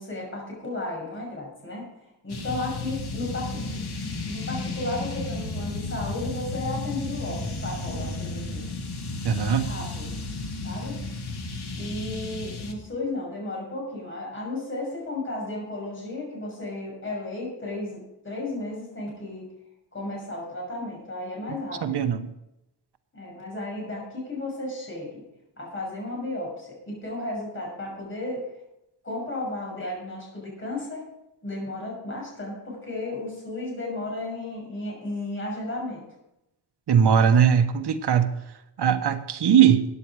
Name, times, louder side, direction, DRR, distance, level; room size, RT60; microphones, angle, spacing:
voice 1, 0.0-1.9 2.2-8.7 9.5-10.2 10.6-11.0 11.8-19.4 19.9-22.1 23.1-25.2 25.6-28.5 29.0-31.0 31.4-36.0, left 2 dB, 30° left, -2 dB, 6.2 m, -34 dB
sound 1, 2.3-12.7, left 2 dB, 65° left, 2.0 m, -33 dB
voice 2, 9.2-9.7 21.8-22.3 36.9-38.4 38.8-39.9, right 8 dB, 70° right, 9 dB, 1.1 m, -20 dB
14.0 x 9.8 x 4.8 m, 0.87 s
wide cardioid pair, 160°, 42 cm